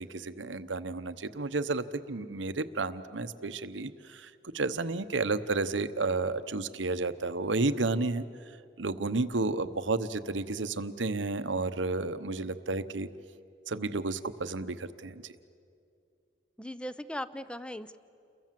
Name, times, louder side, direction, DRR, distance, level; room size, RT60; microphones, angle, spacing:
voice 1, 0.0-8.2 8.8-13.1 13.7-15.2, right 3 dB, 90° right, 12 dB, 1.0 m, -32 dB
voice 2, 16.6-18.0, left 1 dB, 5° left, 14 dB, 0.7 m, -38 dB
29.5 x 22.5 x 7.6 m, 2.5 s
head